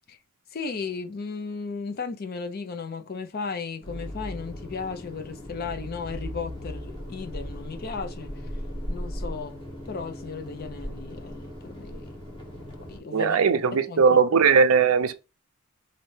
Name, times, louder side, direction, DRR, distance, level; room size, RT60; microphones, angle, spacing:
voice 1, 0.5-8.3 8.9-12.1 12.9-14.2, left 5 dB, 45° left, 0.5 m, -35 dB
sound 1, 3.8-13.0, equal, 25° left, 1.2 m, -37 dB
voice 2, 13.1-15.1, right 5 dB, 85° right, 0.5 m, -19 dB
4.1 x 2.6 x 3.2 m
head